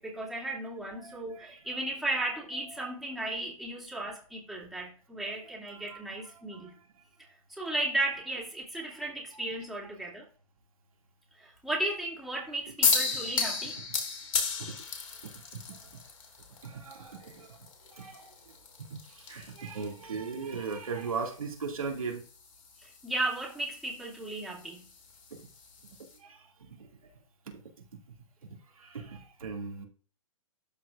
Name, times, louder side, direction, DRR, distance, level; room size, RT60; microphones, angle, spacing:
voice 1, 0.0-6.7 7.5-10.3 11.4-13.8 22.8-24.8, right 2 dB, ahead, -5 dB, 2.4 m, -35 dB
voice 2, 1.0-1.5 2.8-2.9 5.7-6.1 6.5-6.9 8.9-9.1 14.6-14.8 15.2-16.0 16.6-18.5 18.9-22.2 25.4-25.5 26.2-27.1 28.5-29.8, right 5 dB, 90° right, 1 dB, 2.2 m, -39 dB
sound 1, 12.8-26.2, left 5 dB, 75° left, 2.9 m, -36 dB
12.5 x 4.7 x 2.4 m, 0.39 s
hypercardioid pair, 130°, 17 cm